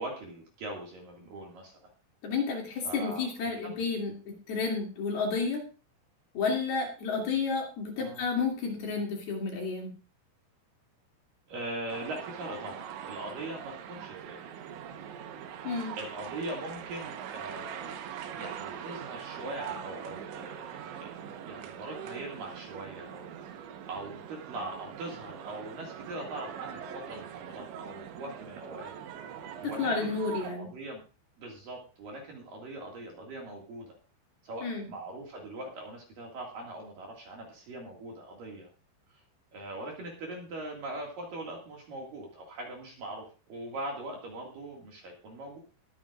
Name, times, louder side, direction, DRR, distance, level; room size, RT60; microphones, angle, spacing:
voice 1, 0.0-1.8 2.7-3.8 8.0-8.2 11.5-14.5 15.9-18.0 18.3-29.0 29.6-30.1 30.4-31.0 31.4-34.0 34.4-38.7 39.1-39.2 39.5-45.6, right 1 dB, 50° right, -1 dB, 3.3 m, -41 dB
voice 2, 2.2-5.7 6.3-9.9 15.6-16.0 29.8-30.7 34.6-34.9, left 4 dB, 55° left, 0 dB, 4.2 m, -31 dB
sound 1, 11.9-30.5, right 9 dB, 70° right, 3.2 m, -42 dB
22.0 x 9.0 x 2.5 m, 0.34 s
omnidirectional pair, 5.7 m